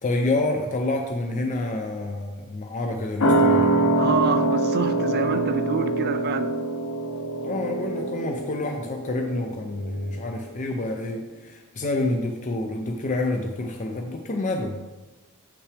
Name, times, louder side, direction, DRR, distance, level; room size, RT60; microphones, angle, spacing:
voice 1, 0.0-3.7 7.4-14.8, left 2 dB, 35° left, 3 dB, 0.5 m, -28 dB
sound 1, 3.2-10.3 10.6-10.7, right 2 dB, 85° left, 0.9 m, -24 dB
voice 2, 4.0-6.5, right 6 dB, 45° right, 11 dB, 0.4 m, -27 dB
7.8 x 5.8 x 3.3 m, 1.2 s
head